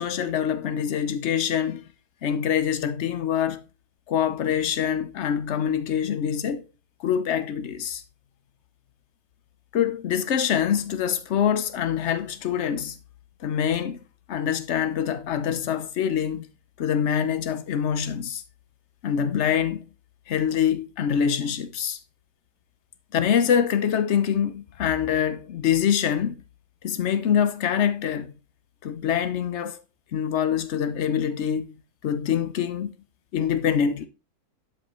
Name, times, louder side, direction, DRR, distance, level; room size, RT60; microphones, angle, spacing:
voice 1, 0.0-1.9 2.2-3.6 4.1-6.7 7.0-8.0 9.7-13.0 13.4-14.0 14.3-16.5 16.8-18.4 19.0-19.9 20.3-22.0 23.1-26.4 26.8-28.3 28.8-29.8 30.1-31.7 32.0-32.9 33.3-34.1, left 8 dB, 55° left, 0.9 m, -25 dB
11.5 x 5.2 x 3.0 m
omnidirectional pair, 1.6 m